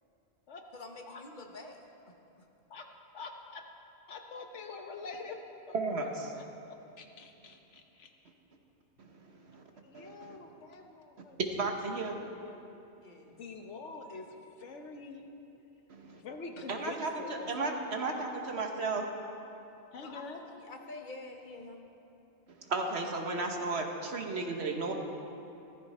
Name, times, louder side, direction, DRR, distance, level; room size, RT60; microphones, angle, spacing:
voice 1, 0.7-1.9 13.0-13.4 20.0-21.8, left 2 dB, 45° left, 3 dB, 1.2 m, -47 dB
voice 2, 3.1-3.6 4.1-5.4 5.7-8.1 9.8-11.4 12.0-12.6 13.4-15.2 16.1-18.3 19.9-20.4, left 4 dB, 80° left, 4 dB, 1.4 m, -46 dB
voice 3, 5.7-6.3 9.0-9.2 9.4-9.6 9.9-10.4 11.4-12.2 15.9-16.2 16.7-19.1 22.5-24.9, right 3 dB, 65° right, 3 dB, 1.4 m, -34 dB
15.5 x 14.0 x 4.2 m, 2.8 s
omnidirectional pair, 1.2 m